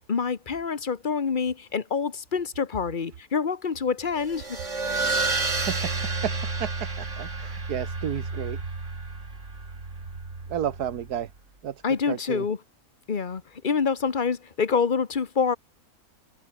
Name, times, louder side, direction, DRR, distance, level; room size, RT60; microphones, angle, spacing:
voice 1, 0.0-4.6 11.8-12.6 13.1-15.6, left 5 dB, 35° left, 1.2 m, -26 dB
sound 1, 4.2-11.2, right 3 dB, 50° right, 3.5 m, -31 dB
voice 2, 5.5-5.9 6.2-6.3 6.6-8.6 10.5-11.3 11.6-11.8 12.1-12.4, right 9 dB, 85° right, 1.6 m, -32 dB
omnidirectional pair, 1.6 m